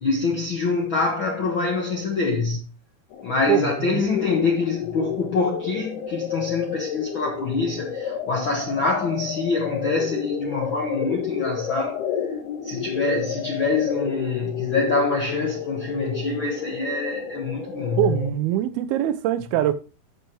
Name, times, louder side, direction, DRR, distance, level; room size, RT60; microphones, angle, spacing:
voice 1, 0.0-2.6 3.2-12.1 12.6-18.0, left 3 dB, 65° left, 1.2 m, -25 dB
sound 1, 3.1-18.3, left 8 dB, 85° left, 3.4 m, -31 dB
voice 2, 3.5-4.0 18.0-19.7, right 12 dB, 80° right, 2.6 m, -23 dB
11.5 x 6.6 x 3.0 m
omnidirectional pair, 4.4 m